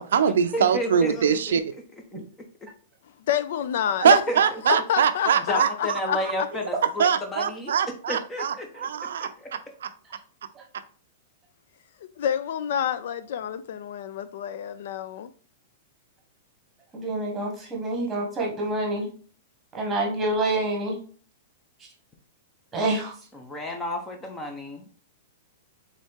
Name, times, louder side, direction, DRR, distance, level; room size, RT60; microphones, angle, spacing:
voice 1, 0.0-1.6 4.0-6.0 7.0-9.9, right 7 dB, 85° right, 10 dB, 0.5 m, -23 dB
voice 2, 0.5-1.4 4.3-4.4 4.7-4.8 5.5-7.7 8.1-8.9 9.2-9.5 23.3-24.8, left 1 dB, 10° left, 5 dB, 0.6 m, -31 dB
voice 3, 3.3-4.2 4.7-6.5 12.2-15.3, left 9 dB, 60° left, 13 dB, 0.3 m, -28 dB
voice 4, 16.9-19.1 19.7-21.0 22.7-23.1, right 2 dB, 10° right, -1 dB, 1.3 m, -27 dB
4.1 x 3.6 x 3.5 m, 0.41 s
supercardioid pair, 165°, 0 cm